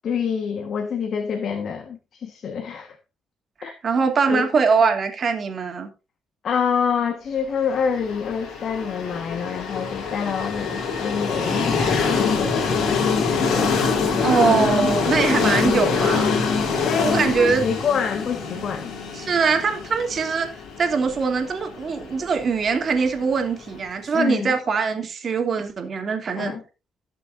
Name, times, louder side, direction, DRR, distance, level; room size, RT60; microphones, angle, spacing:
voice 1, 0.0-3.0 3.6-3.7 4.3-4.5 6.4-13.1 13.5-14.0 16.8-18.9 24.1-24.6 26.3-26.6, left 6 dB, 60° left, 1.5 m, -27 dB
voice 2, 3.6-5.9 14.2-16.3 17.0-17.6 19.1-20.5 20.8-26.5, right 5 dB, 50° right, 2.7 m, -22 dB
Train, 7.9-23.7, left 5 dB, 75° left, 3.2 m, -24 dB
18.0 x 6.7 x 2.7 m
cardioid pair, 90°, 0 cm